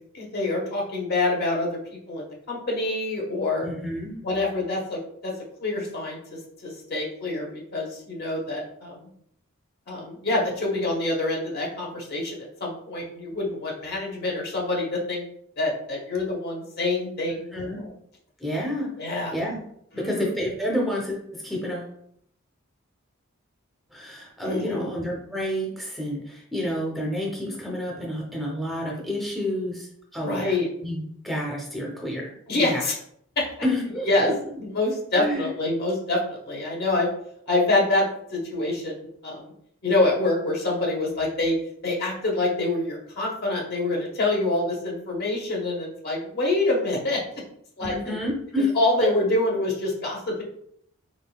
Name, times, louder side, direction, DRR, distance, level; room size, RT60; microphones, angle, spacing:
voice 1, 0.1-3.7 4.2-5.3 5.6-9.1 9.9-15.2 15.6-17.9 19.0-19.4 19.9-20.4 24.4-24.9 30.2-30.7 32.5-32.9 33.4-33.5 34.1-34.3 34.6-37.1 37.5-39.5 39.8-41.5 41.8-47.2 47.8-48.2 48.8-50.4, left 2 dB, 50° left, -1 dB, 1.0 m, -26 dB
voice 2, 3.6-4.2 17.5-17.8 18.4-18.9 19.3-19.6 19.9-21.9 23.9-30.5 30.8-32.8 33.6-34.3 35.1-35.5 47.8-48.7 49.0-49.1, left 1 dB, ahead, -3 dB, 0.7 m, -29 dB
4.1 x 3.7 x 2.3 m, 0.68 s
head